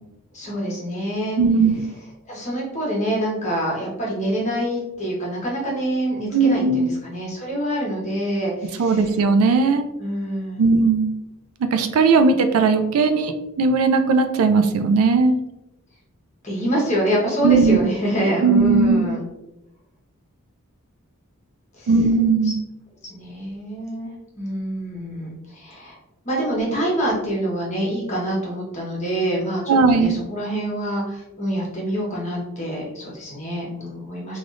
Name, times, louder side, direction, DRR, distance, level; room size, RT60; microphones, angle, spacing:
voice 1, 0.3-1.4 2.3-9.1 10.0-10.6 16.4-19.2 21.8-21.9 22.5-22.6 23.1-26.0 26.2-34.4, right 1 dB, 30° left, -3 dB, 1.0 m, -26 dB
voice 2, 1.4-1.8 6.3-6.9 8.8-9.9 10.6-11.1 11.7-15.3 17.4-17.8 18.4-19.0 21.9-22.6 29.7-30.2, right 4 dB, 75° right, 8 dB, 0.3 m, -18 dB
3.3 x 2.4 x 2.5 m, 0.92 s
head